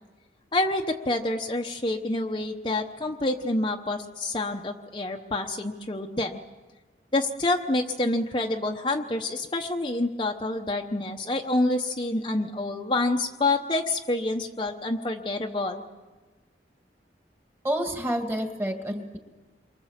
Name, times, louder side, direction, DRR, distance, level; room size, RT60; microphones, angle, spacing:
voice 1, 0.5-6.4 7.1-15.8, left 2 dB, 25° left, 2 dB, 0.9 m, -27 dB
voice 2, 17.6-19.2, equal, 15° right, 4 dB, 2.1 m, -29 dB
28.5 x 24.0 x 7.4 m, 1.3 s
head